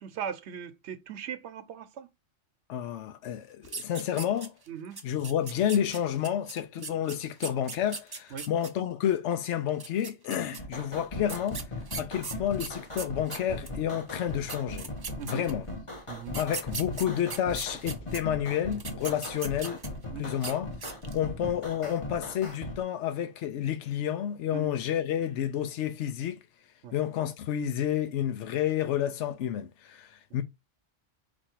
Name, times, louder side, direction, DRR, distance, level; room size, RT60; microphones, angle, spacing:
voice 1, 0.0-2.1 4.7-5.0 6.8-6.9 8.3-8.5 10.4-10.6 15.2-15.5 16.1-16.4 20.1-20.4 24.5-24.8 26.8-27.0, right 7 dB, 70° right, 0.9 m, -39 dB
voice 2, 2.7-4.5 5.0-11.6 12.0-14.9 15.3-15.7 16.3-19.8 20.2-20.7 21.1-26.4 26.9-30.4, left 10 dB, 80° left, 0.9 m, -30 dB
sound 1, 3.6-4.7 5.0-8.7 9.7-10.6 11.3-13.8 14.2-14.3 14.5-15.7 16.3-18.2 18.7-20.0 20.4-20.5 20.8-21.2, right 4 dB, 40° right, 0.3 m, -39 dB
sound 2, 10.6-22.8, left 1 dB, 30° left, 1.1 m, -39 dB
4.4 x 2.6 x 4.4 m
omnidirectional pair, 1.2 m